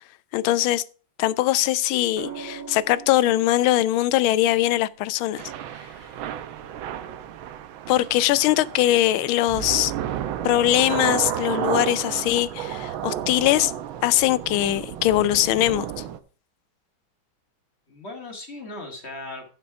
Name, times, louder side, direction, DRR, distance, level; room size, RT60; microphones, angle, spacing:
voice 1, 0.3-0.8 1.2-5.4 7.9-9.9 10.4-13.7 14.0-15.9, left 14 dB, 85° left, 1.4 m, -21 dB
sound 1, 2.2-6.3 8.0-8.4, right 6 dB, 65° right, 2.6 m, -43 dB
Thunder / Rain, 5.4-16.2, right 10 dB, 85° right, 1.6 m, -32 dB
voice 2, 6.6-7.2 14.2-14.3 17.9-19.5, left 2 dB, 35° left, 1.9 m, -39 dB
12.0 x 5.3 x 4.7 m
omnidirectional pair, 2.2 m